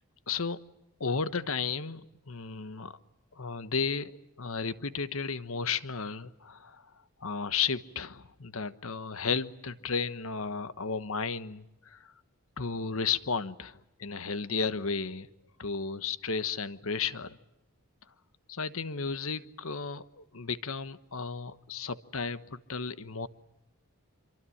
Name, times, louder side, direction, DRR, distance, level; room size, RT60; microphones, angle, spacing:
voice 1, 0.3-0.6 1.0-2.9 3.4-4.1 4.4-6.8 7.2-12.0 12.6-15.3 15.6-17.4 18.5-23.3, left 5 dB, 70° left, 14 dB, 1.2 m, -33 dB
27.0 x 24.0 x 8.6 m, 0.93 s
head